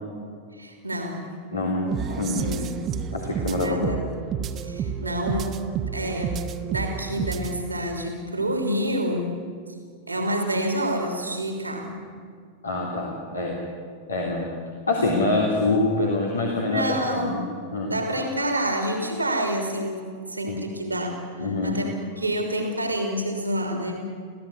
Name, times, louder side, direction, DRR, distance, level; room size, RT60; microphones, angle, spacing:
voice 1, 0.5-1.3 2.3-3.0 3.5-4.0 4.6-5.6 5.9-9.4 10.1-12.1 16.6-17.4 17.9-21.2 21.6-24.1, equal, 80° right, 4 dB, 3.2 m, -28 dB
voice 2, 1.5-2.4 3.1-4.0 12.6-13.6 14.1-14.5 14.9-17.4 17.7-17.9 20.5-20.6 21.4-21.8, left 2 dB, 75° left, -2 dB, 3.3 m, -25 dB
sound 1, 1.9-7.6, right 7 dB, 30° right, 1.4 m, -30 dB
27.5 x 16.5 x 9.8 m, 2.1 s
figure-of-eight pair, 90°, 0 cm